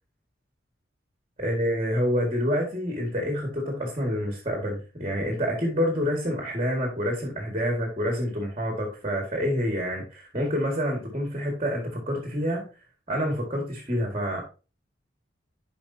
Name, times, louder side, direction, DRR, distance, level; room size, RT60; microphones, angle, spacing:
voice 1, 1.4-12.7 13.1-14.4, equal, 30° right, 1 dB, 2.0 m, -27 dB
12.0 x 4.8 x 2.8 m, 0.32 s
head